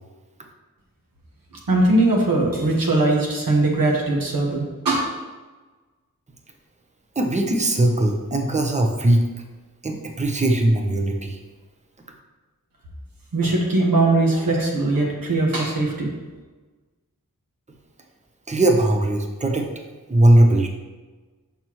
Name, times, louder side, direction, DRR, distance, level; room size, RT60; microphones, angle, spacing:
voice 1, 1.7-5.0 13.3-16.1, right 2 dB, 90° right, -2 dB, 1.3 m, -20 dB
voice 2, 7.2-9.3 9.8-11.4 18.5-19.7 20.1-20.7, right 1 dB, 20° right, 3 dB, 0.8 m, -19 dB
6.0 x 5.5 x 3.0 m, 1.3 s
wide cardioid pair, 50°, 33 cm